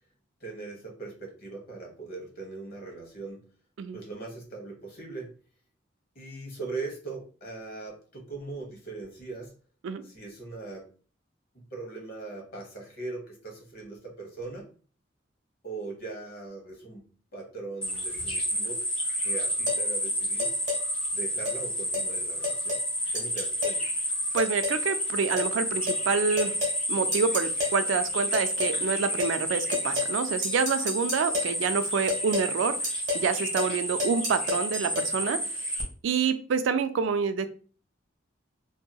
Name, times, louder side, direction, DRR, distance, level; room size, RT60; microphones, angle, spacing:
voice 1, 0.4-3.5 3.9-5.3 6.1-9.6 10.0-10.9 11.5-14.7 15.6-17.1 17.3-18.9 19.1-20.5 21.1-22.8 23.1-23.9, right 3 dB, 55° left, 0 dB, 1.0 m, -40 dB
sound 1, 17.8-35.8, equal, 5° left, 1.0 m, -30 dB
sound 2, 19.7-19.8 20.4-20.8 21.4-21.6 21.9-22.1 22.4-22.9 23.1-23.8 24.4-24.8 25.4-25.5 25.9-26.0 26.4-26.8 27.1-27.8 28.3-28.8 29.2-29.4 29.7-30.2 30.4-31.6 32.1-32.5 32.8-33.3 33.6-33.7 34.0-35.1, left 3 dB, 40° right, 1.3 m, -31 dB
voice 2, 24.3-26.5 26.9-32.8 33.1-35.4 35.7-37.5, right 5 dB, 85° right, 10 dB, 0.3 m, -27 dB
2.8 x 2.7 x 2.2 m, 0.40 s
head